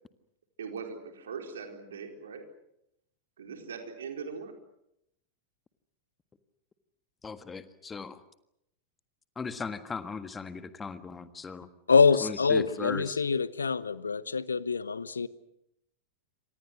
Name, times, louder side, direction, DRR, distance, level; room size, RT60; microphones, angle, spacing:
voice 1, 0.6-2.4 3.4-4.5, right 5 dB, 65° right, 4.5 m, -40 dB
voice 2, 7.2-8.2 9.3-11.7 12.2-13.2, left 5 dB, 15° left, 1.6 m, -38 dB
voice 3, 11.9-15.3, left 5 dB, 75° left, 0.9 m, -25 dB
28.5 x 26.0 x 6.3 m
figure-of-eight pair, 90°, 0 cm